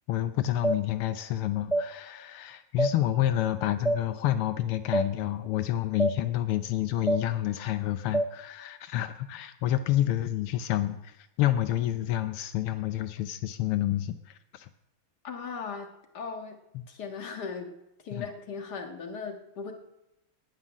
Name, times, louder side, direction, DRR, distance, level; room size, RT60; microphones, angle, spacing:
voice 1, 0.1-14.7 16.7-16.9 18.1-18.3, left 13 dB, 85° left, 9 dB, 1.6 m, -29 dB
sound 1, 0.6-0.8 1.7-1.9 2.8-2.9 3.8-4.0 4.9-5.1 6.0-6.2 7.1-7.2 8.1-8.3, right 2 dB, ahead, 0.6 m, -25 dB
voice 2, 15.2-15.9 16.1-16.6 16.9-17.7 18.0-19.7, left 5 dB, 50° left, 3 dB, 2.1 m, -37 dB
16.5 x 5.7 x 10.0 m, 0.90 s
omnidirectional pair, 2.4 m